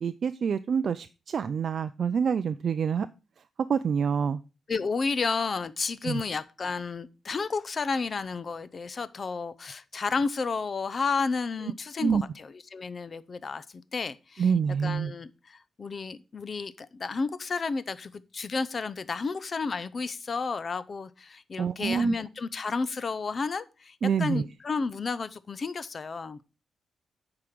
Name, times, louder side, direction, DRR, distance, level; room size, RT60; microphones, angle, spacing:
voice 1, 0.0-3.1 3.7-4.4 6.0-6.2 12.0-12.2 14.4-15.1 21.6-22.1 24.0-24.5, right 6 dB, 50° right, 0.4 m, -27 dB
voice 2, 4.7-14.5 14.8-26.4, left 4 dB, 35° left, 0.6 m, -32 dB
8.7 x 4.8 x 6.0 m
wide cardioid pair, 150°, 0 cm